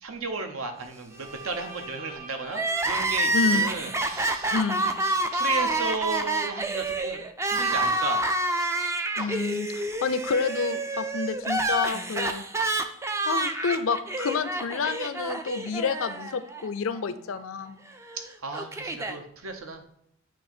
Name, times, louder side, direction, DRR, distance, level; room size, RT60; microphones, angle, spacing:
voice 1, 0.0-4.5 5.3-7.2 7.5-8.2 18.4-19.8, right 3 dB, 80° right, 6 dB, 0.9 m, -34 dB
Bowed string instrument, 1.1-6.9, right 2 dB, 40° right, 1.5 m, -45 dB
Crying sobbing, 2.5-16.7 16.9-17.0 18.0-19.2, right 2 dB, 15° right, 0.3 m, -28 dB
voice 2, 3.3-3.8 4.5-4.9 9.2-12.4 13.3-17.8, left 5 dB, 70° left, 13 dB, 0.5 m, -29 dB
8.5 x 3.0 x 4.4 m, 0.71 s
head